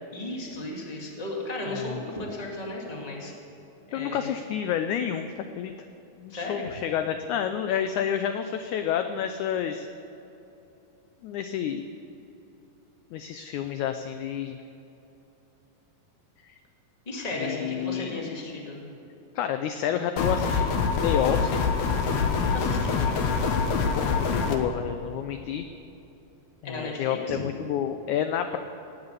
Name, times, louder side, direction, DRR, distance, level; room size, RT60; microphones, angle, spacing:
voice 1, 0.1-3.3 3.9-4.3 6.3-6.7 17.0-18.8 22.4-23.2 26.6-27.4, left 1 dB, 15° left, -2 dB, 1.6 m, -35 dB
voice 2, 1.7-2.0 3.9-5.3 5.6-5.7 6.2-9.9 11.2-11.8 13.1-14.6 16.4-16.5 17.4-18.3 19.3-21.6 24.0-25.6 26.6-28.6, left 9 dB, 80° left, 8 dB, 1.7 m, -29 dB
sound 1, 20.2-24.6, left 5 dB, 65° left, 2.2 m, -25 dB
18.5 x 8.1 x 8.0 m, 3.0 s
omnidirectional pair, 4.1 m